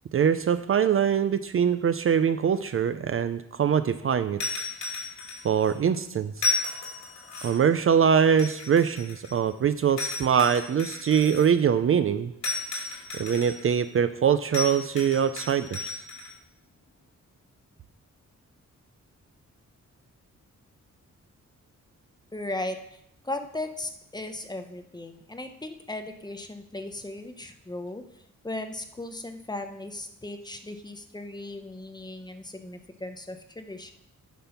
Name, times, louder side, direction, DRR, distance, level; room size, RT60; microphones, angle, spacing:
voice 1, 0.1-4.4 5.4-6.4 7.4-12.3 13.1-16.0, right 7 dB, 45° right, 12 dB, 0.4 m, -23 dB
sound 1, 4.4-5.7 6.4-7.7 8.4-9.5 10.0-11.5 12.4-13.8 14.5-16.3, left 3 dB, 70° left, 2.9 m, -33 dB
voice 2, 22.3-33.9, left 2 dB, 15° left, 6 dB, 0.7 m, -37 dB
10.0 x 6.1 x 5.7 m, 0.76 s
wide cardioid pair, 160°, 30 cm